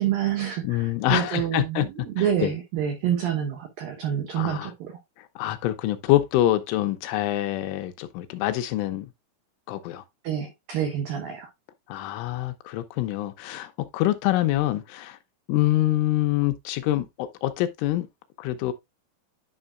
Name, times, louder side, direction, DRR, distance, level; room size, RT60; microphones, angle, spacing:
voice 1, 0.0-5.0 10.2-11.5, right 10 dB, 90° right, 2.0 m, -27 dB
voice 2, 0.6-1.9 2.2-2.5 4.3-4.7 5.2-9.1 9.7-10.0 11.9-15.2 15.5-18.1 18.4-18.7, left 14 dB, 85° left, 3.1 m, -25 dB
10.5 x 5.5 x 2.4 m
omnidirectional pair, 5.9 m